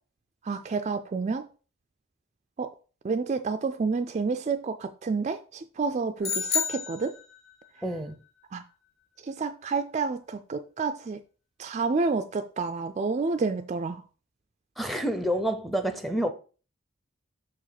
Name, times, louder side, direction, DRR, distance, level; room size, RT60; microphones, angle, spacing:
voice 1, 0.4-1.5 2.6-2.7 3.0-7.2 8.5-8.6 9.2-11.2 11.6-14.0, right 4 dB, 35° right, 0.3 m, -29 dB
sound 1, 6.2-7.7, left 6 dB, 70° left, 1.5 m, -30 dB
voice 2, 7.8-8.2 14.8-16.3, equal, ahead, 0.7 m, -28 dB
6.2 x 4.9 x 4.1 m
head